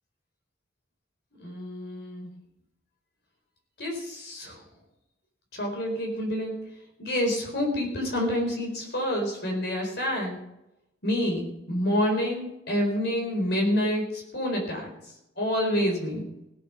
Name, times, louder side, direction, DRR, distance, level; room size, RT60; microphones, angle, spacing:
voice 1, 1.4-2.3 3.8-4.6 5.5-6.6 7.0-10.4 11.0-14.9 15.4-16.3, equal, 55° left, 1 dB, 4.3 m, -28 dB
17.0 x 8.5 x 5.8 m, 0.86 s
head